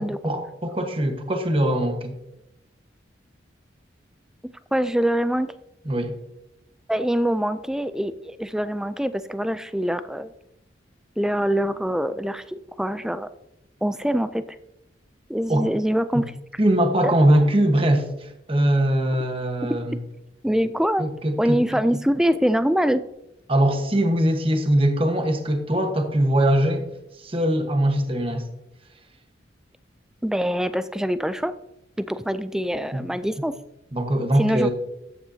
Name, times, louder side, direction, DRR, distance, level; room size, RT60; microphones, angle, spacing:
voice 1, 0.0-2.1 5.8-6.2 15.5-15.7 16.1-16.2 16.6-20.0 21.0-21.6 23.5-26.9 27.2-28.5 32.9-33.0 33.9-34.7, right 1 dB, 30° right, 5 dB, 1.2 m, -21 dB
voice 2, 4.7-5.5 6.9-10.3 11.2-13.3 13.8-14.4 15.3-16.3 17.0-17.1 20.4-21.0 21.4-23.0 30.2-31.5 32.0-33.5 34.4-34.7, equal, 5° right, 12 dB, 0.3 m, -24 dB
13.5 x 9.2 x 2.7 m, 0.86 s
head